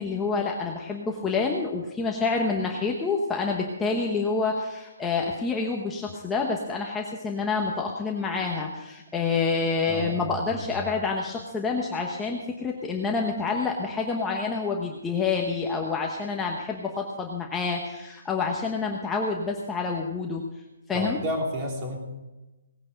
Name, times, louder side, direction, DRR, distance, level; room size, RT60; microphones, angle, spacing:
voice 1, 0.0-20.4 20.9-21.2, left 4 dB, 10° left, 0 dB, 1.1 m, -28 dB
voice 2, 9.9-10.9 20.9-22.0, equal, 25° right, 0 dB, 3.6 m, -31 dB
18.5 x 9.6 x 5.2 m, 1.1 s
hypercardioid pair, 165°, 0 cm